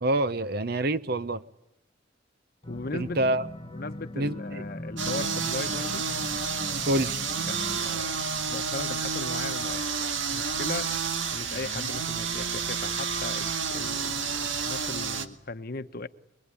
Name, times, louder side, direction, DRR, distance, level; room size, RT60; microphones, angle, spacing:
voice 1, 0.0-1.4 2.9-3.4 4.2-4.6 6.9-7.2, right 1 dB, 55° right, 14 dB, 0.9 m, -26 dB
sound 1, 2.6-7.8, left 1 dB, 25° left, 1.5 m, -40 dB
voice 2, 2.7-3.2 3.7-6.1 7.5-10.9 11.3-16.1, left 3 dB, 55° left, 11 dB, 1.0 m, -38 dB
sound 2, 5.0-15.3, right 5 dB, 85° right, 1.9 m, -30 dB
25.5 x 22.5 x 9.9 m, 0.81 s
head